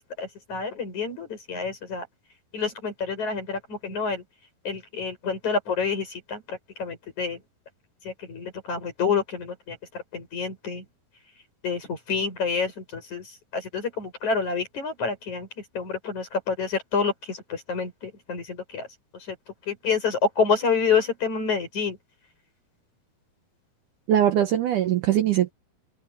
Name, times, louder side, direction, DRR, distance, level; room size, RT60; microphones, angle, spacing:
voice 1, 0.0-2.1 2.5-4.2 4.6-7.4 8.0-10.9 11.6-18.9 19.1-19.4 19.7-22.0, left 5 dB, 50° left, 8.3 m, -28 dB
voice 2, 24.1-25.5, right 11 dB, 70° right, 2.2 m, -21 dB
open air
omnidirectional pair, 4.4 m